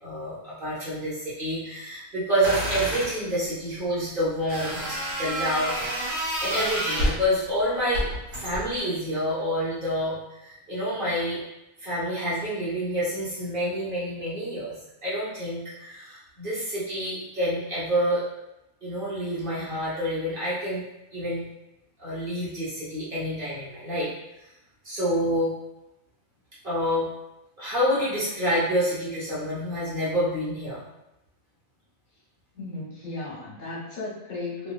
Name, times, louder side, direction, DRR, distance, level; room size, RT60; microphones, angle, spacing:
voice 1, 0.0-6.1 6.4-11.4 11.8-14.7 15.0-18.2 18.8-20.8 21.1-21.4 22.0-24.1 24.8-25.5 26.6-27.1 27.6-30.8, equal, 45° right, -9 dB, 1.0 m, -28 dB
sound 1, 2.4-3.1 4.5-7.3 7.9-8.8, equal, 75° right, 1.3 m, -29 dB
voice 2, 32.5-34.7, left 3 dB, 75° left, -7 dB, 1.4 m, -35 dB
3.0 x 2.4 x 2.2 m, 0.90 s
omnidirectional pair, 1.4 m